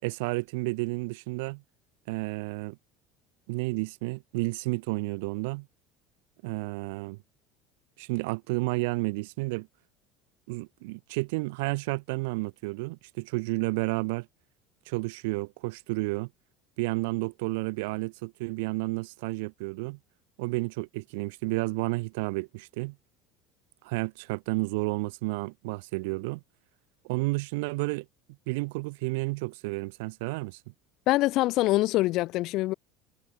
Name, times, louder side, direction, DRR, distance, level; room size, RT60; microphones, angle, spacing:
voice 1, 0.0-1.6 2.1-2.8 3.5-5.7 6.4-7.2 8.0-9.7 10.5-14.3 14.9-16.3 16.8-20.0 20.4-23.0 23.8-26.4 27.0-28.1 28.5-30.6, right 26 dB, 80° right, 3.6 m, -31 dB
voice 2, 31.1-32.7, left 18 dB, 60° left, 6.1 m, -24 dB
supercardioid pair, 90°, 0 cm